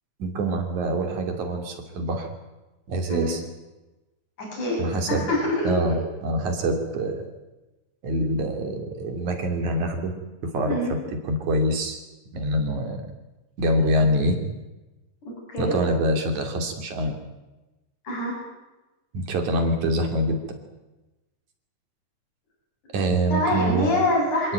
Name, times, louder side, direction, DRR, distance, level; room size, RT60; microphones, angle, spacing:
voice 1, 0.2-2.3 2.9-3.4 4.8-5.3 5.6-7.2 8.0-10.1 10.4-11.0 11.3-12.0 12.3-13.1 13.6-14.4 15.6-17.2 19.1-20.6 22.9-23.9 24.4-24.5, right 1 dB, 70° right, 5 dB, 4.3 m, -25 dB
voice 2, 4.4-4.8 5.1-5.7 10.7-10.9 15.5-15.8 18.0-18.3 23.3-24.5, left 1 dB, 80° left, -3 dB, 8.9 m, -25 dB
26.0 x 17.0 x 9.3 m, 1.1 s
omnidirectional pair, 3.5 m